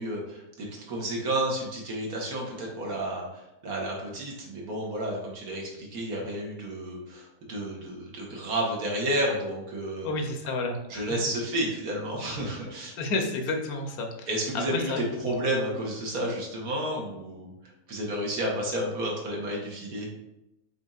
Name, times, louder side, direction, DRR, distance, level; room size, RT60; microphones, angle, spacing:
voice 1, 0.0-10.1 10.9-12.9 14.3-17.5 17.9-20.1, right 1 dB, 85° right, -1 dB, 1.6 m, -31 dB
voice 2, 10.0-11.1 13.0-14.3 14.5-15.3, left 3 dB, 85° left, 3 dB, 1.2 m, -31 dB
5.3 x 4.0 x 2.4 m, 0.90 s
omnidirectional pair, 1.5 m